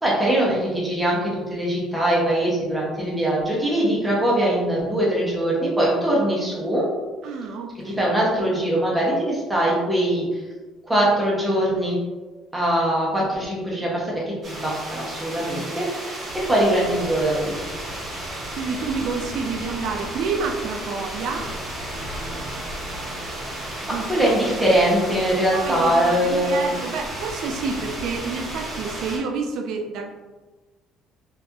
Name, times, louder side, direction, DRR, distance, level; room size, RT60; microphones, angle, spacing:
voice 1, 0.0-6.9 7.8-10.4 10.9-12.0 12.5-15.9 16.3-17.6 23.6-23.8 24.1-26.7, right 1 dB, 10° right, -5 dB, 0.6 m, -22 dB
voice 2, 7.2-8.0 18.6-21.5 23.8-24.4 25.5-30.2, right 4 dB, 65° right, 3 dB, 0.3 m, -29 dB
sound 1, 14.4-29.2, right 1 dB, 30° right, 0.9 m, -33 dB
2.7 x 2.3 x 2.2 m, 1.3 s
cardioid pair, 150°, 0 cm